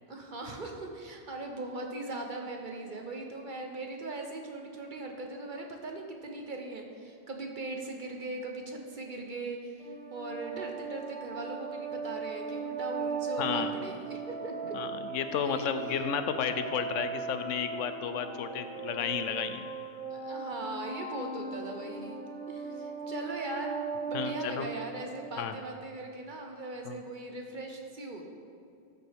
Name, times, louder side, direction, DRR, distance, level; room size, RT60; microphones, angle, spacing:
voice 1, 0.1-14.7 15.4-15.7 20.1-28.2, right 2 dB, 45° right, 2 dB, 1.0 m, -40 dB
sound 1, 9.8-25.2, right 5 dB, 5° left, 2.1 m, -38 dB
voice 2, 13.4-13.7 14.7-19.7 24.1-24.7 25.4-25.5 26.9-27.0, left 7 dB, 85° left, 9 dB, 1.0 m, -32 dB
13.0 x 6.7 x 3.5 m, 2.4 s
omnidirectional pair, 1.3 m